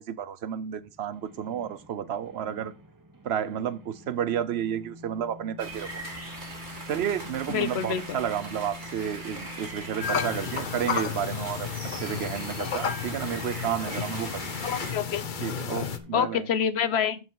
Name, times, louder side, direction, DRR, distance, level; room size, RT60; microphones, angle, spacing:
voice 1, 0.0-2.7 3.2-6.0 6.9-11.7 12.0-14.5 15.4-16.5, right 9 dB, 80° right, 1.0 m, -31 dB
sound 1, 0.8-16.4, left 2 dB, 20° right, 0.8 m, -47 dB
sound 2, 5.6-14.9, right 2 dB, 50° right, 2.5 m, -41 dB
voice 2, 7.5-8.2 14.6-15.2 16.1-17.2, left 8 dB, 90° left, 1.1 m, -27 dB
sound 3, 10.0-16.0, left 6 dB, 55° left, 0.9 m, -32 dB
14.0 x 4.7 x 3.9 m
omnidirectional pair, 1.1 m